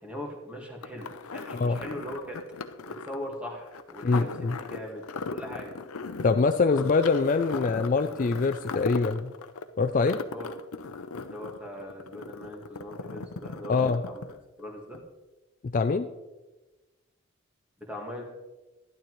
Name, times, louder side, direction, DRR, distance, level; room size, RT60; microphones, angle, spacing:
voice 1, 0.0-2.4 2.9-5.7 10.3-10.5 11.2-14.2 14.6-15.0 17.8-18.2, left 1 dB, 5° right, -1 dB, 1.7 m, -40 dB
sound 1, 0.8-14.6 14.9-15.0, left 4 dB, 75° left, 0.6 m, -38 dB
voice 2, 4.0-4.6 6.2-9.3 9.8-10.2 13.7-14.0 15.6-16.1, left 4 dB, 35° left, 8 dB, 0.3 m, -24 dB
11.5 x 11.5 x 3.1 m, 1.1 s
head